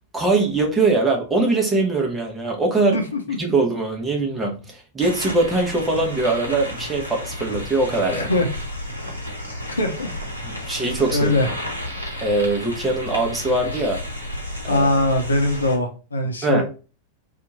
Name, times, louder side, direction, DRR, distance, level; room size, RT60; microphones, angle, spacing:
voice 1, 0.1-3.0 3.4-8.3 10.4-11.3 12.2-14.0 14.6-14.9 16.4-16.6, right 2 dB, 15° right, 1 dB, 0.9 m, -22 dB
voice 2, 2.9-3.4 8.1-8.5 9.7-10.2 11.1-11.5 14.7-16.6, left 2 dB, 75° left, 4 dB, 0.7 m, -21 dB
sound 1, 5.0-15.8, left 1 dB, 85° right, 0.8 m, -32 dB
2.8 x 2.4 x 4.0 m, 0.34 s
figure-of-eight pair, 90°, 0 cm